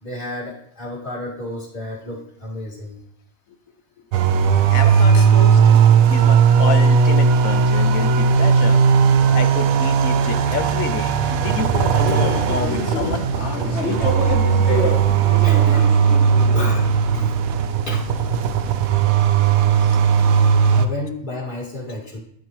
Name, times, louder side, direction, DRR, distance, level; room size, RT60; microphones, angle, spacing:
voice 1, 0.0-3.0 12.1-12.2 15.4-16.2 16.5-17.3 17.9-18.4 20.7-22.2, left 1 dB, 35° left, -4 dB, 2.3 m, -32 dB
sound 1, 4.1-20.9, right 6 dB, 80° right, 1.1 m, -17 dB
voice 2, 4.7-5.8 6.1-8.8 9.3-13.6 19.8-19.9, left 6 dB, 70° left, 8 dB, 1.1 m, -28 dB
sound 2, 11.6-17.2, left 3 dB, 55° left, 1.4 m, -28 dB
13.0 x 4.8 x 3.1 m, 0.74 s
omnidirectional pair, 1.5 m